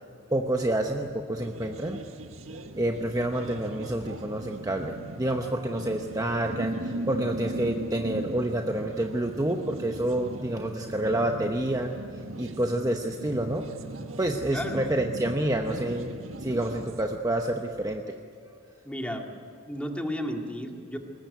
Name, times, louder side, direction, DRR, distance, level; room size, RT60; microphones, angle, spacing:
voice 1, 0.3-2.0 2.7-12.0 12.4-13.7 14.2-16.1 16.4-18.0, right 1 dB, 15° right, 4 dB, 0.9 m, -28 dB
sound 1, 1.4-17.0, right 1 dB, 80° right, 1.5 m, -38 dB
voice 2, 14.5-14.9 18.8-19.3 19.7-21.0, equal, 5° left, 2 dB, 2.0 m, -33 dB
21.0 x 19.5 x 9.3 m, 2.5 s
head